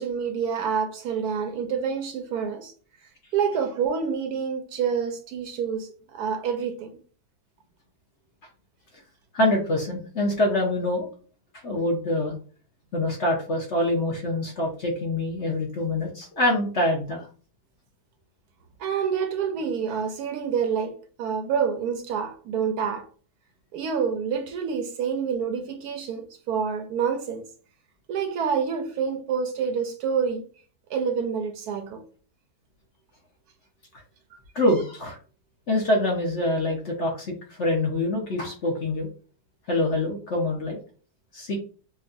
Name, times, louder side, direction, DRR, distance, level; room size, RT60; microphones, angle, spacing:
voice 1, 0.0-2.7 3.3-7.0 18.8-23.0 23.7-27.5 28.1-30.5 30.9-32.0, right 6 dB, 75° right, 1.0 m, -27 dB
voice 2, 9.3-11.1 11.6-12.3 12.9-17.2 34.5-35.2 35.7-37.3 37.6-39.1 39.7-40.8 41.3-41.6, left 1 dB, 50° left, 1.0 m, -25 dB
5.3 x 2.3 x 2.5 m
omnidirectional pair, 1.8 m